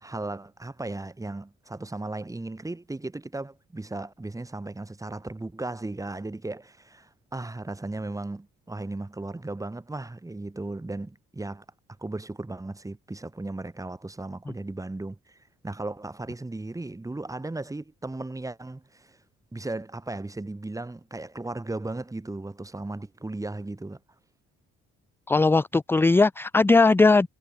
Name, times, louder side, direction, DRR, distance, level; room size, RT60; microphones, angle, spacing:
voice 1, 0.0-11.6 12.0-15.4 15.6-19.2 19.5-24.0, right 2 dB, 10° right, 1.0 m, -36 dB
voice 2, 25.3-27.3, left 3 dB, 10° left, 0.3 m, -19 dB
cardioid pair, 90°, 30 cm